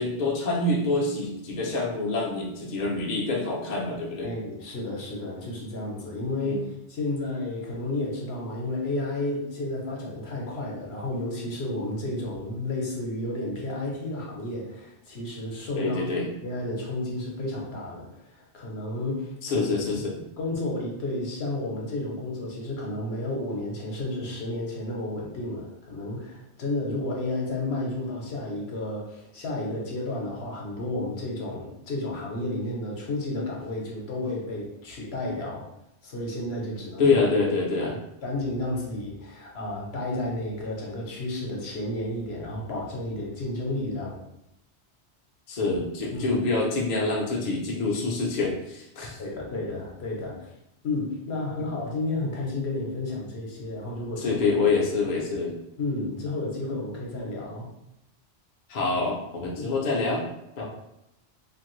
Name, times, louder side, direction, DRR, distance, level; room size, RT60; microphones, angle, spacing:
voice 1, 0.0-4.3 6.4-6.6 15.8-16.3 19.4-20.2 37.0-37.9 45.5-49.2 54.2-55.5 58.7-60.3 60.6-60.7, left 3 dB, 50° left, -2 dB, 0.6 m, -26 dB
voice 2, 4.2-16.0 16.4-19.7 20.4-35.7 36.0-37.0 37.8-37.9 38.2-44.2 46.1-46.4 49.2-50.5 50.8-54.4 55.8-57.7 59.6-59.8 60.6-60.7, left 2 dB, 65° left, -2 dB, 1.0 m, -32 dB
2.8 x 2.5 x 3.0 m, 0.84 s
omnidirectional pair, 1.1 m